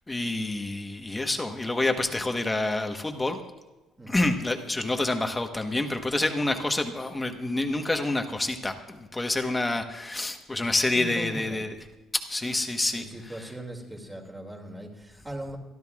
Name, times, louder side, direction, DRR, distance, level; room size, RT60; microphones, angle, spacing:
voice 1, 0.1-3.4 4.1-11.7 12.3-13.0, left 2 dB, 10° left, 5 dB, 1.2 m, -28 dB
voice 2, 4.0-4.3 10.9-11.6 12.9-15.6, equal, 10° right, 0 dB, 2.5 m, -39 dB
25.0 x 12.5 x 2.4 m, 1.1 s
cardioid pair, 135°, 0 cm